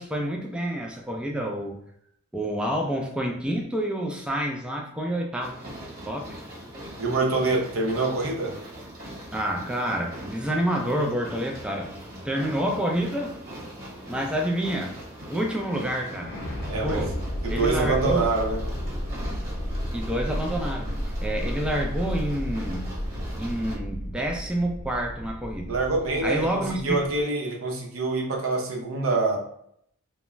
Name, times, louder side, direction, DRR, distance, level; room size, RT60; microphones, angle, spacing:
voice 1, 0.0-1.8 2.3-5.6 6.1-6.4 9.3-11.9 12.2-13.4 14.1-15.0 15.3-16.3 16.8-17.1 17.5-18.3 19.9-20.9 21.2-22.9 23.4-25.8 26.2-27.1, right 1 dB, 5° right, 0 dB, 0.3 m, -28 dB
sound 1, 5.4-23.8, equal, 45° right, 1.1 m, -41 dB
voice 2, 7.0-8.5 16.7-17.1 17.4-18.6 25.7-29.4, right 3 dB, 90° right, 0 dB, 0.7 m, -25 dB
sound 2, 16.1-27.2, equal, 55° left, 0.6 m, -32 dB
2.3 x 2.2 x 3.0 m, 0.70 s
head